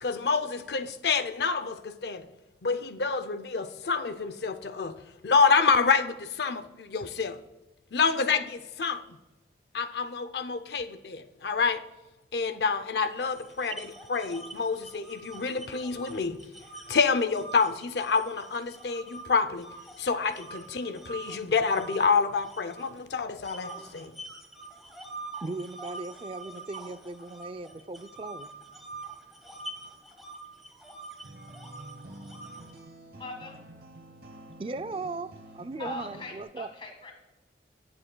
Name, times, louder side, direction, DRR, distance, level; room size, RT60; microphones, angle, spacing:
voice 1, 0.0-2.3 2.6-5.0 5.2-7.4 7.9-9.0 9.7-11.8 12.3-16.4 16.9-19.7 20.0-24.1, left 5 dB, 70° left, 0.5 m, -27 dB
sound 1, 13.2-19.2 19.6-23.0 23.4-32.8, right 2 dB, ahead, 1.5 m, -45 dB
voice 2, 25.4-28.5 34.6-35.3 35.5-36.7, right 3 dB, 30° right, 0.4 m, -37 dB
sound 2, 31.2-36.4, right 1 dB, 60° right, 0.9 m, -48 dB
voice 3, 33.1-33.6 35.8-37.1, left 2 dB, 30° left, 1.7 m, -40 dB
17.5 x 7.7 x 2.2 m
head